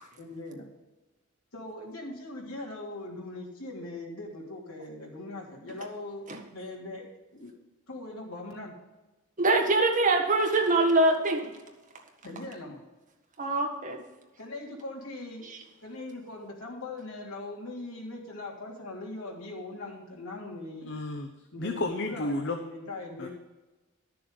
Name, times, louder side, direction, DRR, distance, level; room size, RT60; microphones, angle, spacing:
voice 1, 0.2-0.7 1.5-6.3 6.5-7.0 7.3-7.5 7.9-8.7 12.2-12.8 14.4-15.4 15.8-21.0 21.5-23.3, left 2 dB, 80° left, -2 dB, 3.2 m, -40 dB
voice 2, 9.4-11.5 13.4-14.0 15.4-15.6, right 2 dB, 40° right, 2 dB, 1.6 m, -24 dB
voice 3, 20.8-21.3 21.6-22.6 23.2-23.3, left 2 dB, 55° left, 6 dB, 0.8 m, -32 dB
12.5 x 6.9 x 5.3 m, 1.1 s
head